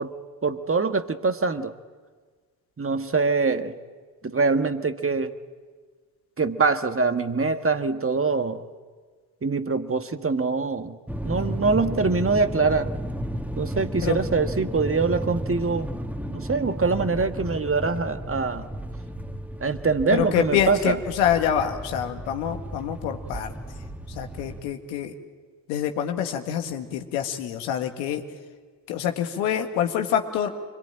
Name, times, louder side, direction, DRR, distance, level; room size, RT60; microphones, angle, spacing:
voice 1, 0.0-1.7 2.8-3.8 4.2-5.3 6.4-8.6 9.4-11.0 11.2-12.9 13.6-15.9 16.3-18.7 19.6-21.0, right 4 dB, 30° right, 8 dB, 1.8 m, -24 dB
sound 1, 11.1-24.6, right 1 dB, 5° right, 2.4 m, -33 dB
voice 2, 20.1-23.5 24.1-25.1 25.7-28.2 28.9-30.5, left 9 dB, 80° left, 5 dB, 1.8 m, -26 dB
26.0 x 21.5 x 9.0 m, 1.5 s
hypercardioid pair, 40°, 45 cm